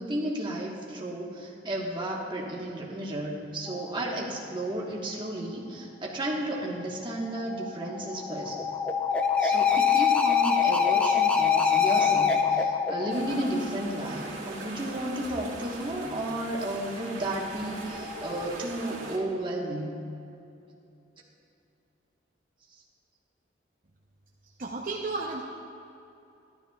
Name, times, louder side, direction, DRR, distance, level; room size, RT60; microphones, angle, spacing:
voice 1, 0.0-8.6 9.4-19.9, right 1 dB, 25° right, -2 dB, 1.3 m, -33 dB
sound 1, 3.7-4.1 7.7-14.1 17.7-18.5, left 7 dB, 5° left, 0.5 m, -25 dB
sound 2, 13.1-19.2, right 2 dB, 80° right, 1.9 m, -40 dB
voice 2, 24.6-25.4, right 3 dB, 45° right, -3 dB, 0.7 m, -32 dB
14.5 x 12.0 x 2.4 m, 2.7 s
head